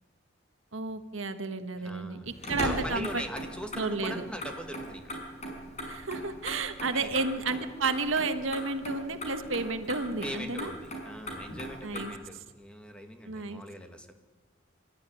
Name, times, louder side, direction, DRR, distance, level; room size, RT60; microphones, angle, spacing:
voice 1, 0.7-2.2 2.5-3.2 3.8-4.2 5.8-10.7 11.8-12.1 13.3-13.6, right 3 dB, 80° right, 9 dB, 1.6 m, -32 dB
voice 2, 1.7-2.3 2.6-5.2 6.9-7.3 10.2-14.1, equal, 5° left, 5 dB, 1.8 m, -41 dB
Motor vehicle (road), 2.3-12.0, equal, 35° left, 5.7 m, -39 dB
26.5 x 13.0 x 9.9 m, 1.3 s
head